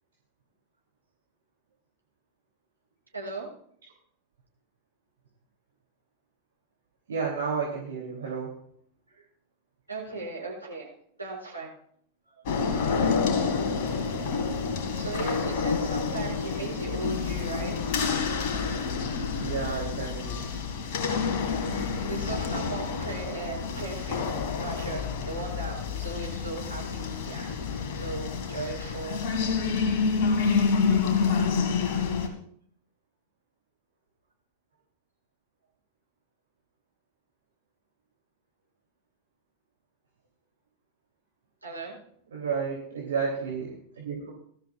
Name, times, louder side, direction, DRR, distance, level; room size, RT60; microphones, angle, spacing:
voice 1, 3.1-3.5 9.1-9.2 9.9-10.9 11.2-11.7 12.3-12.4 14.9-18.0 21.6-29.2 41.6-42.0, right 3 dB, 80° right, -3 dB, 6.5 m, -38 dB
voice 2, 7.1-8.5 19.4-20.4 42.3-44.3, right 5 dB, 65° right, -2 dB, 3.2 m, -31 dB
sound 1, 12.5-32.3, left 5 dB, 50° left, 2.1 m, -28 dB
19.5 x 13.0 x 2.5 m, 0.62 s
figure-of-eight pair, 90°, 0 cm